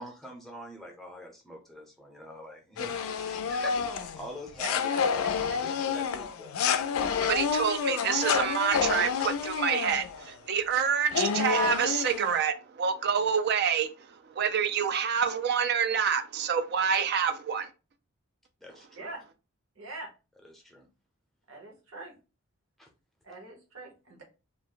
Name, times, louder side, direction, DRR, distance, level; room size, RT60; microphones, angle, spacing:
voice 1, 0.0-5.2 5.6-6.9 18.6-19.1 20.4-20.9 22.8-22.9, equal, ahead, 0.6 m, -44 dB
sound 1, 2.8-10.3 10.7-10.8 11.1-12.4, left 6 dB, 80° left, 0.3 m, -29 dB
voice 2, 4.6-5.6 18.9-19.2 19.8-20.1 21.5-22.1 23.2-24.2, right 2 dB, 75° right, 1.0 m, -43 dB
voice 3, 7.2-17.7, right 7 dB, 50° right, 0.4 m, -27 dB
2.5 x 2.1 x 3.7 m
head